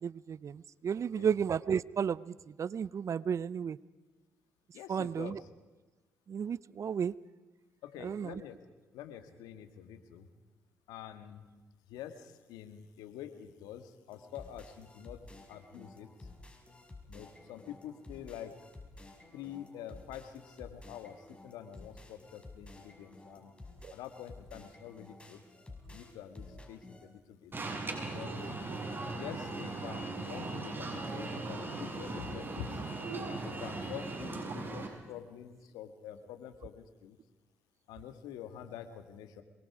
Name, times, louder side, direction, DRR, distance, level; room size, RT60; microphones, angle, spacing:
voice 1, 0.0-3.8 4.9-5.4 6.3-7.1 8.0-8.3 23.8-23.9, right 7 dB, 50° right, 20 dB, 0.7 m, -33 dB
voice 2, 4.7-5.5 7.8-8.6 8.9-10.3 10.9-11.6 11.9-16.3 17.1-18.7 19.3-23.5 23.9-25.5 25.9-27.5 28.1-28.5 29.1-32.8 33.4-37.2 37.9-39.4, left 10 dB, 80° left, 8 dB, 1.9 m, -47 dB
sound 1, 14.1-27.0, left 2 dB, 15° left, 6.2 m, -52 dB
Alarm, 27.5-34.9, right 3 dB, 35° right, 6.2 m, -38 dB
25.5 x 23.0 x 4.9 m, 1.3 s
hypercardioid pair, 50°, 7 cm